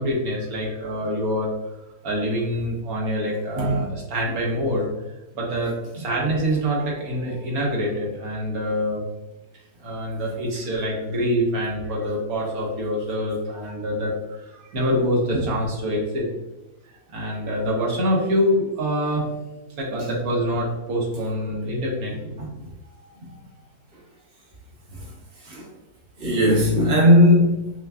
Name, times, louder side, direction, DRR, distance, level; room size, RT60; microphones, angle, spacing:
voice 1, 0.0-1.5 2.0-4.8 5.3-9.0 9.8-16.3 17.1-19.2 19.8-22.3 22.8-23.3 24.9-25.0, equal, 65° right, -3 dB, 1.5 m, -25 dB
voice 2, 26.2-27.7, left 1 dB, 85° right, -6 dB, 1.9 m, -18 dB
6.7 x 2.3 x 2.3 m, 1.0 s
omnidirectional pair, 1.7 m